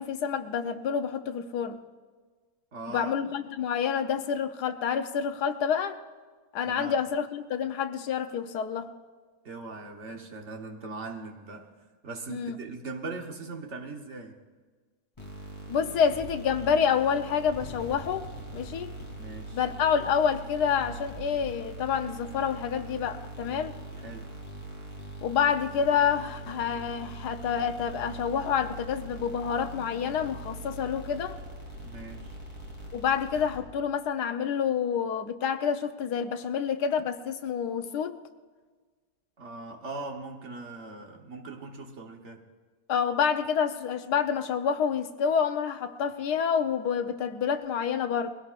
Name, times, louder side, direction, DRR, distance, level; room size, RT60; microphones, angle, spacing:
voice 1, 0.0-1.8 2.9-6.0 6.5-8.9 12.3-12.5 15.7-18.9 19.5-23.7 25.2-31.4 32.9-38.2 42.9-48.3, left 7 dB, 90° left, 1.4 m, -28 dB
voice 2, 2.7-3.1 6.6-7.0 9.4-11.7 12.0-14.4 19.1-19.6 24.0-24.3 31.8-32.4 39.4-42.4, right 3 dB, 50° right, 1.4 m, -40 dB
sound 1, 15.2-33.9, right 1 dB, 15° left, 3.3 m, -42 dB
21.5 x 16.5 x 2.5 m
omnidirectional pair, 1.7 m